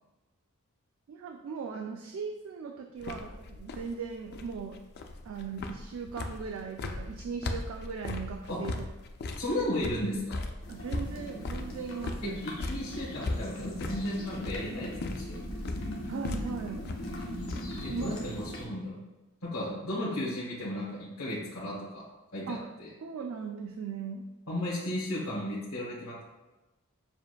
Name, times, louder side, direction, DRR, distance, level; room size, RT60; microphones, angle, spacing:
voice 1, 1.1-4.8 5.2-8.9 10.7-12.4 16.1-16.9 17.9-18.4 22.5-22.6 23.0-24.2, right 5 dB, 65° right, 3 dB, 0.3 m, -38 dB
sound 1, 3.0-17.9, left 2 dB, 50° left, 0.3 m, -38 dB
voice 2, 9.4-10.4 12.2-15.4 17.8-19.0 19.4-22.0 22.3-22.9 24.5-26.2, left 1 dB, 85° left, -10 dB, 1.3 m, -34 dB
sound 2, 10.6-18.7, left 1 dB, 65° left, 0.9 m, -40 dB
7.0 x 2.5 x 2.2 m, 1.1 s
head